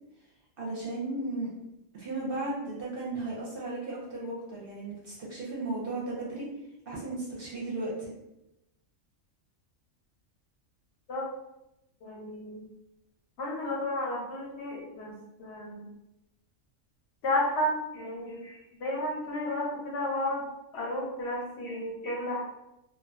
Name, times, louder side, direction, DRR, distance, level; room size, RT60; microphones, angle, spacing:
voice 1, 0.6-1.5 1.9-6.5 6.9-8.1, right 2 dB, 60° right, -5 dB, 0.7 m, -35 dB
voice 2, 12.0-12.7 13.4-15.1 15.4-15.8 17.2-20.4 20.7-22.4, left 1 dB, 65° left, -2 dB, 0.8 m, -32 dB
2.5 x 2.2 x 2.3 m, 0.89 s
omnidirectional pair, 1.3 m